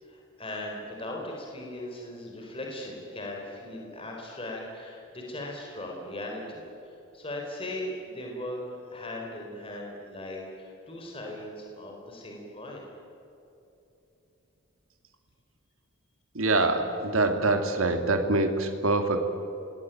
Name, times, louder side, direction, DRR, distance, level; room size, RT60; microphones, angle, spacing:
voice 1, 0.0-12.9, left 1 dB, 25° left, 0 dB, 4.4 m, -38 dB
voice 2, 16.3-19.2, right 2 dB, 80° right, 5 dB, 2.5 m, -25 dB
27.5 x 20.5 x 9.3 m, 2.9 s
head